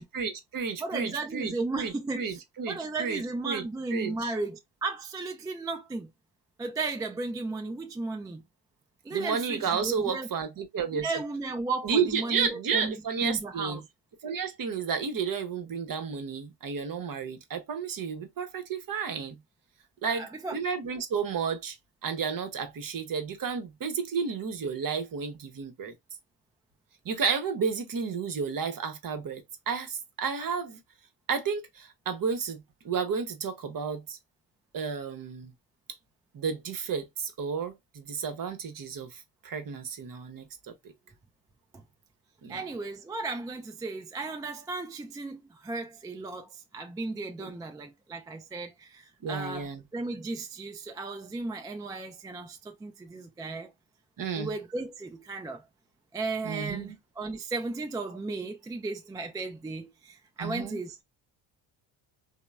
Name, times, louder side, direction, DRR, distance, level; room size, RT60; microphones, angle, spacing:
voice 1, 0.0-3.7 3.9-4.3 9.1-11.2 11.8-13.8 14.2-19.4 20.0-20.3 20.5-21.8 22.0-25.9 27.0-30.8 31.3-34.2 34.7-35.5 36.3-40.7 42.4-42.6 47.4-47.5 49.2-49.8 54.2-54.5 56.4-57.0 60.4-60.8, right 6 dB, 40° right, 0.8 m, -32 dB
voice 2, 0.8-6.1 6.6-8.4 9.0-10.3 10.9-13.8 20.1-20.6 41.7-41.8 42.5-53.7 54.3-55.6 56.1-61.0, right 3 dB, 10° right, 0.3 m, -35 dB
2.9 x 2.2 x 2.2 m
supercardioid pair, 70°, 50 cm